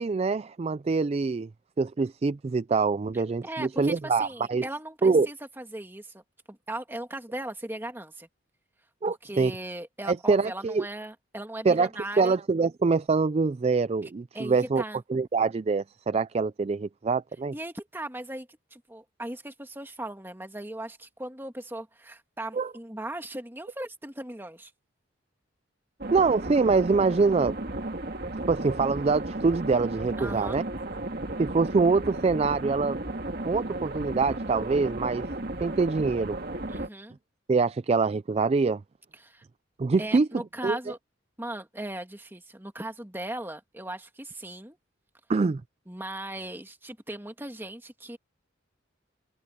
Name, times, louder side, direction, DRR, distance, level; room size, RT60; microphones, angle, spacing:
voice 1, 0.0-1.5 1.8-4.6 5.0-5.3 9.0-9.5 10.0-10.9 11.6-11.9 12.2-14.8 15.1-17.5 22.5-22.7 26.1-27.6 28.5-30.6 31.4-33.0 33.5-35.3 35.6-36.4 37.5-38.8 39.8-40.3 40.6-40.8 45.3-45.6, right 4 dB, 30° right, 0.3 m, -24 dB
voice 2, 3.1-6.2 6.5-8.3 9.1-12.4 14.0-15.0 17.5-24.7 30.2-30.6 36.7-37.2 39.1-39.4 40.0-41.0 41.4-44.8 45.9-48.2, right 1 dB, 10° right, 2.0 m, -38 dB
sound 1, 26.0-36.9, right 2 dB, 50° right, 2.0 m, -34 dB
head